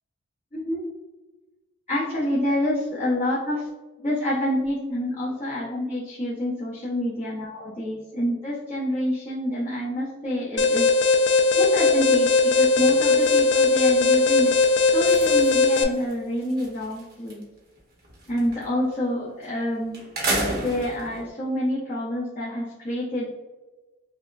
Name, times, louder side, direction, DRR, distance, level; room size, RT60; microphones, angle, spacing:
voice 1, 0.5-0.8 1.9-3.7 4.0-10.9 11.6-14.5 14.9-17.4 18.3-20.0 20.5-23.3, left 1 dB, 30° left, -10 dB, 0.9 m, -27 dB
Alarm, 10.6-15.8, left 4 dB, 55° left, 0.4 m, -19 dB
sound 1, 11.9-12.1 12.4-17.4 17.8-18.9 19.4-19.5 19.9-21.3, right 1 dB, 45° right, 0.9 m, -34 dB
5.5 x 2.1 x 2.4 m, 1.2 s
head